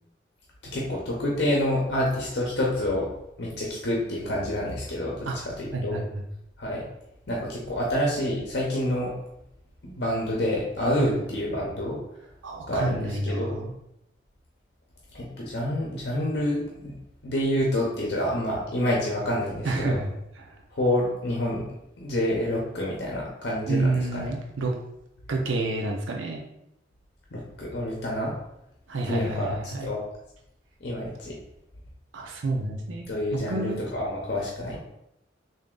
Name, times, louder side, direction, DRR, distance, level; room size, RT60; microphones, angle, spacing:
voice 1, 0.6-3.1 3.4-5.3 5.6-6.0 6.6-6.8 7.3-9.1 9.8-12.0 12.7-13.6 15.1-16.9 17.2-20.0 20.7-21.6 22.0-24.3 27.3-28.3 29.0-30.0 30.8-31.3 33.1-34.8, left 1 dB, 60° left, -3 dB, 0.7 m, -28 dB
voice 2, 5.7-6.2 11.0-11.2 12.4-13.7 19.6-20.1 20.4-20.6 23.7-24.7 25.3-26.4 28.9-29.9 32.1-33.1 33.5-33.8, right 2 dB, 90° right, 1 dB, 0.6 m, -29 dB
3.4 x 2.6 x 3.7 m, 0.83 s
head